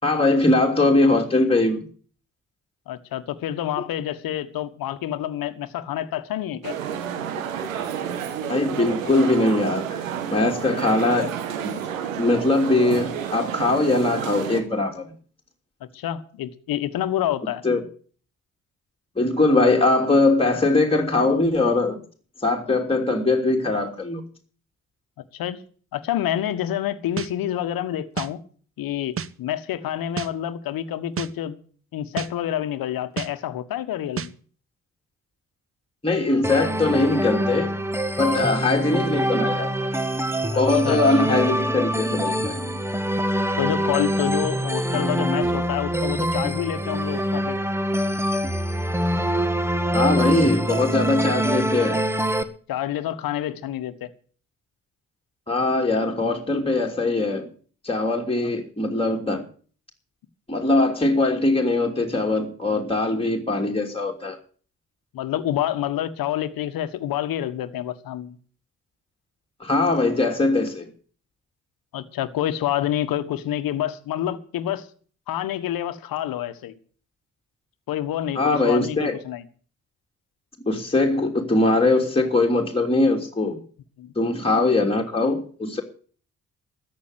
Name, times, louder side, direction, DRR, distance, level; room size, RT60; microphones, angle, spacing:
voice 1, 0.0-1.9 8.5-10.0 10.3-11.3 11.6-11.7 12.2-15.1 17.6-17.8 19.2-22.0 22.4-24.2 36.0-37.7 38.2-39.9 40.6-42.8 49.9-52.0 55.5-57.5 57.8-59.4 60.5-64.4 69.6-70.9 78.3-79.1 80.7-83.6 84.1-85.8, left 2 dB, 15° left, 3.0 m, -21 dB
voice 2, 2.9-6.8 15.8-17.6 25.3-25.6 25.9-28.4 28.8-31.6 31.9-34.3 38.2-38.4 40.5-41.0 41.3-41.4 43.6-47.6 52.7-54.1 58.3-58.5 65.1-68.4 71.9-74.9 75.3-76.7 77.9-79.4 84.0-84.1, left 12 dB, 65° left, 1.4 m, -28 dB
sound 1, 6.6-14.6, right 8 dB, 90° right, 1.3 m, -30 dB
sound 2, 27.2-27.3 28.2-28.3 29.2-29.3 30.2-30.3 31.2-31.3 32.2-32.3 33.2-33.3 34.2-34.3, right 7 dB, 35° right, 0.9 m, -29 dB
sound 3, 36.4-52.4, right 1 dB, 5° right, 1.7 m, -25 dB
14.0 x 8.9 x 8.1 m
hypercardioid pair, 40°, 38 cm